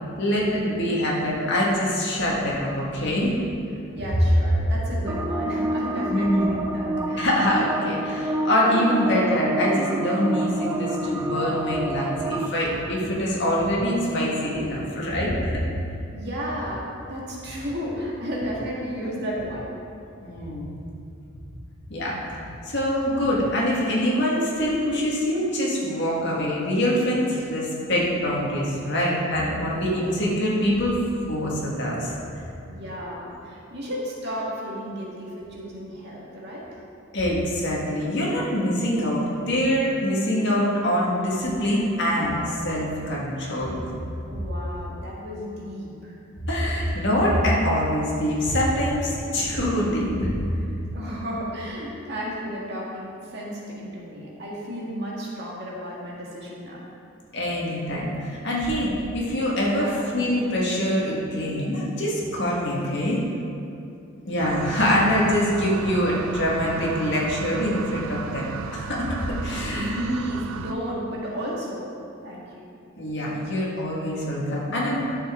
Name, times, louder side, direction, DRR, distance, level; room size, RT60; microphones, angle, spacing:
voice 1, 0.2-3.3 6.1-6.5 7.1-15.6 20.2-20.6 21.9-22.2 22.6-31.0 31.3-32.1 37.1-43.9 46.5-50.5 57.3-63.2 64.3-68.5 68.7-70.0 73.0-75.0, equal, 55° left, -4 dB, 1.8 m, -24 dB
voice 2, 3.9-7.3 16.1-19.7 32.7-36.8 44.3-46.2 50.9-56.9 59.7-60.0 69.6-71.9 72.2-72.7, equal, 55° right, -5 dB, 1.9 m, -33 dB
sound 1, 5.1-12.5, right 1 dB, 10° right, 0.5 m, -28 dB
sound 2, 11.7-12.1 12.6-13.1 13.6-14.0 14.5-14.9 15.5-15.9 16.5-16.9 17.4-17.9 18.4-18.8 19.3-19.8 20.3-20.8 21.3-21.8 22.3-22.7 23.2-23.6, equal, 40° left, 2.2 m, -44 dB
sound 3, 64.4-70.7, right 6 dB, 80° right, 0.4 m, -35 dB
11.0 x 6.8 x 3.8 m, 2.6 s
head